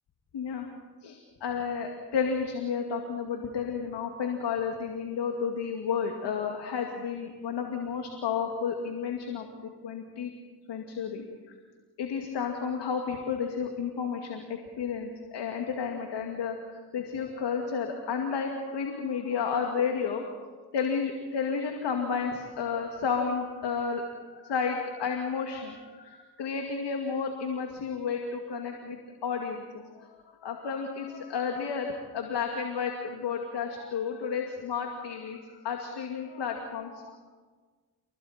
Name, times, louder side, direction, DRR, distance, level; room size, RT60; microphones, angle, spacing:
voice 1, 0.3-0.7 1.0-9.5 9.8-10.3 10.7-11.3 12.0-37.2, left 6 dB, 70° left, 3 dB, 2.4 m, -32 dB
29.0 x 23.5 x 4.4 m, 1.4 s
supercardioid pair, 50°, 43 cm